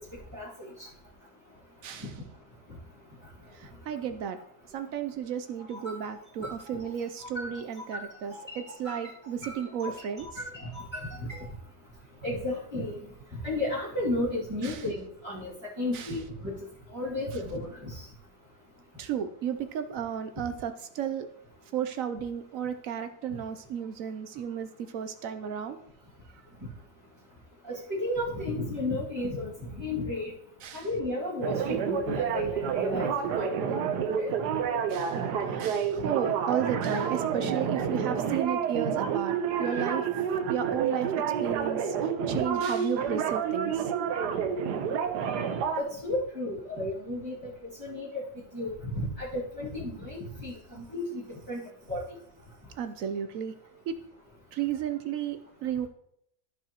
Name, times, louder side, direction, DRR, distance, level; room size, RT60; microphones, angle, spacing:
voice 1, 3.5-4.4 4.7-10.3 14.6-14.8 15.9-16.1 19.0-21.3 21.7-25.8 30.6-30.9 34.9-35.3 35.5-40.1 40.5-42.0 42.3-43.9 45.4-45.6 52.8-53.5 53.9-54.0 54.5-55.9, right 8 dB, 70° right, 9 dB, 0.8 m, -33 dB
voice 2, 7.9-9.1 9.4-9.9 10.2-11.5 12.2-12.9 13.4-16.5 16.9-18.0 27.7-30.3 30.7-33.7 34.2-34.3 42.2-42.3 45.8-47.5 47.8-48.2 48.5-51.2 51.5-51.6 51.9-52.0, left 1 dB, 15° right, -12 dB, 2.1 m, -33 dB
sound 1, 31.4-45.8, right 7 dB, 85° right, 1.3 m, -29 dB
14.0 x 4.9 x 2.9 m, 0.73 s
omnidirectional pair, 1.7 m